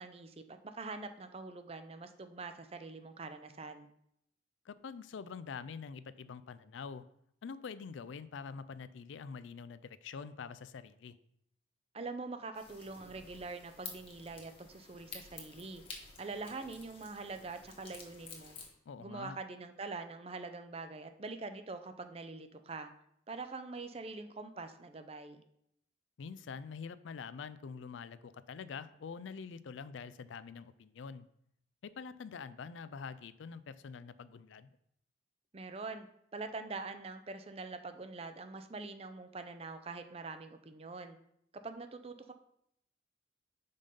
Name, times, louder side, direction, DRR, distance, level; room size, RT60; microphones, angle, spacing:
voice 1, 0.0-3.9 11.9-15.8 16.2-18.6 19.0-22.9 23.3-25.4 35.5-36.1 36.3-41.2 41.6-42.3, right 3 dB, 30° right, 8 dB, 0.5 m, -44 dB
voice 2, 4.7-7.0 7.4-11.2 18.9-19.4 26.2-31.2 31.8-34.7, left 5 dB, 85° left, 15 dB, 0.4 m, -45 dB
sound 1, 12.5-18.7, left 4 dB, 30° left, 1.2 m, -51 dB
5.3 x 5.3 x 5.4 m, 0.74 s
head